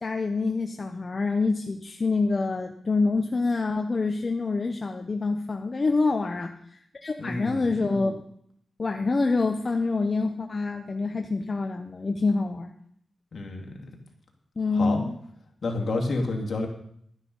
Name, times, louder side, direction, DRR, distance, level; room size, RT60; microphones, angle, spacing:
voice 1, 0.0-8.2 8.8-12.7 14.6-15.2, left 3 dB, 35° left, 4 dB, 0.8 m, -26 dB
voice 2, 7.2-7.7 13.3-13.7 14.7-15.0 15.6-16.7, left 2 dB, 60° left, 1 dB, 2.5 m, -29 dB
12.0 x 9.9 x 5.5 m, 0.67 s
wide cardioid pair, 105°, 0 cm